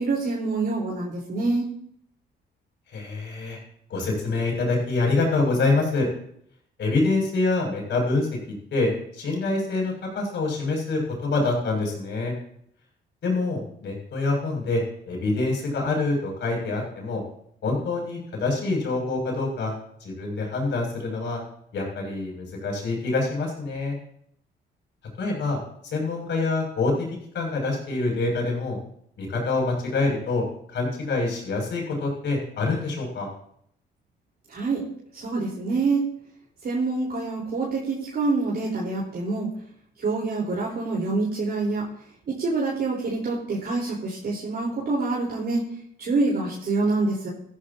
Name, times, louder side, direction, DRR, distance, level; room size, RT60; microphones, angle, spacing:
voice 1, 0.0-1.7 34.5-34.8 35.1-36.0 36.6-39.5 40.0-41.9 42.3-45.6 46.0-47.3, right 3 dB, 55° right, -6 dB, 4.2 m, -26 dB
voice 2, 2.9-3.6 3.9-6.1 6.8-8.3 8.7-12.3 13.2-17.2 17.6-19.7 20.0-21.4 21.7-23.9 25.2-25.6 25.9-26.9 27.3-28.8 29.2-30.4 30.7-33.3, left 3 dB, 65° left, -1 dB, 6.8 m, -26 dB
15.0 x 14.5 x 2.9 m, 0.69 s
cardioid pair, 90°, 20 cm